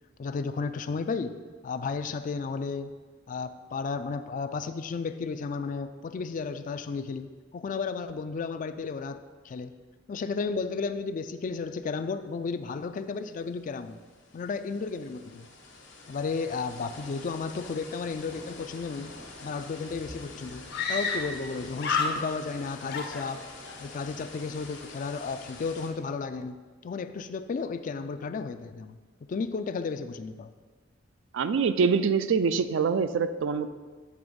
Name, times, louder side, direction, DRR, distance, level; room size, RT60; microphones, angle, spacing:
voice 1, 0.2-1.4 1.6-2.9 3.3-9.7 10.1-14.0 14.3-15.5 16.1-19.1 19.4-23.4 23.8-29.0 29.3-30.5, left 4 dB, 45° left, 10 dB, 0.3 m, -33 dB
sound 1, 13.0-13.1 13.3-25.9, left 3 dB, 75° left, 1.2 m, -46 dB
Screaming, 19.9-20.0 20.7-21.5 21.8-22.6 22.9-23.8, left 4 dB, 60° left, 0.7 m, -30 dB
voice 2, 31.3-33.7, right 5 dB, 75° right, 11 dB, 0.4 m, -25 dB
8.6 x 3.5 x 5.1 m, 1.4 s
head